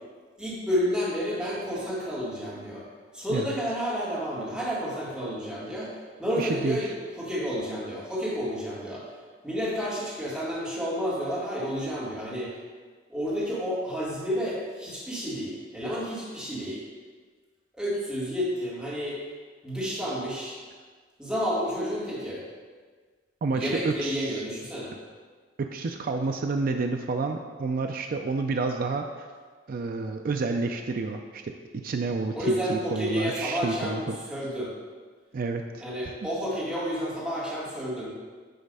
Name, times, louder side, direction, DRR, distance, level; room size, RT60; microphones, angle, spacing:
voice 1, 0.4-2.8 3.1-5.9 6.2-6.9 7.2-9.0 9.4-12.5 13.1-16.8 17.8-19.2 19.6-20.6 21.2-22.4 23.5-24.9 32.3-34.0 34.3-34.7 35.8-38.1, equal, 5° right, -8 dB, 2.0 m, -30 dB
voice 2, 6.4-6.9 23.4-24.4 25.6-29.3 29.7-34.2 35.3-36.1, right 3 dB, 50° right, 4 dB, 0.4 m, -30 dB
9.3 x 3.2 x 5.4 m, 1.5 s
head